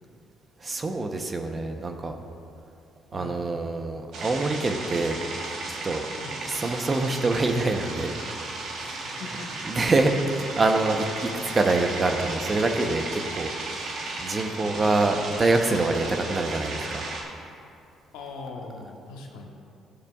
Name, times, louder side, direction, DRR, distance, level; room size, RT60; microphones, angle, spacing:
voice 1, 0.6-2.2 3.1-6.1 6.5-8.2 8.7-9.2 9.6-13.9 14.2-17.0, right 2 dB, 30° right, 5 dB, 0.8 m, -26 dB
sound 1, 4.1-17.2, right 2 dB, 70° right, 1.3 m, -35 dB
voice 2, 9.0-9.8 11.3-11.5 14.6-14.9 18.1-19.5, left 3 dB, 85° left, 0 dB, 1.2 m, -41 dB
14.5 x 6.5 x 2.4 m, 2.5 s
supercardioid pair, 70°, 0 cm